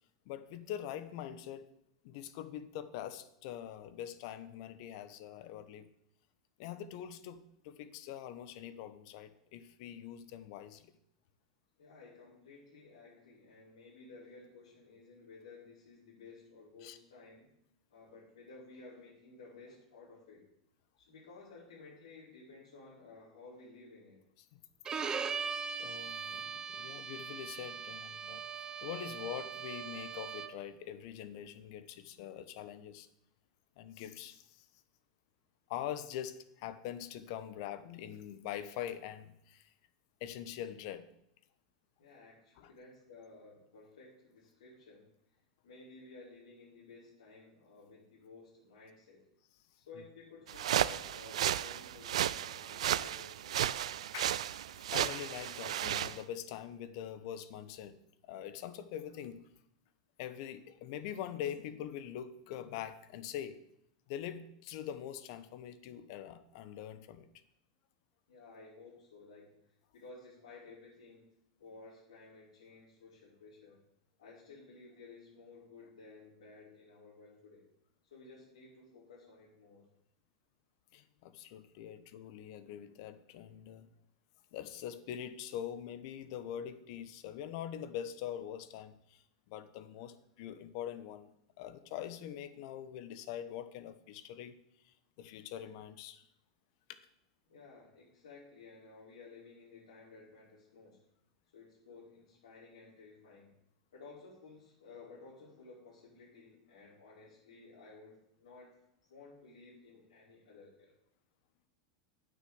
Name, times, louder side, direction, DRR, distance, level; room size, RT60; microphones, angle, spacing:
voice 1, 0.3-1.7 2.0-5.9 6.6-10.9 16.8-17.0 24.5-24.6 25.8-33.1 33.8-34.6 35.7-39.7 40.2-41.0 42.6-42.7 54.1-54.5 54.9-57.9 58.3-59.4 60.2-63.6 64.1-67.3 80.9-83.9 84.5-91.3 91.6-94.5 94.8-96.3 96.9-97.0, left 10 dB, 60° left, 12 dB, 1.1 m, -44 dB
voice 2, 11.8-17.5 17.9-20.4 21.0-24.2 42.0-45.1 45.6-49.2 49.9-53.7 68.3-69.6 69.9-71.3 71.6-73.8 74.2-77.6 78.1-79.8 97.5-101.0 101.5-103.5 103.9-108.7 109.1-110.9, left 3 dB, 90° left, -10 dB, 5.4 m, -55 dB
Bowed string instrument, 24.9-30.7, right 6 dB, 20° right, 0.8 m, -40 dB
sound 1, 50.5-56.2, right 11 dB, 85° right, 0.4 m, -34 dB
9.2 x 6.7 x 8.0 m, 0.78 s
supercardioid pair, 125°, 3 cm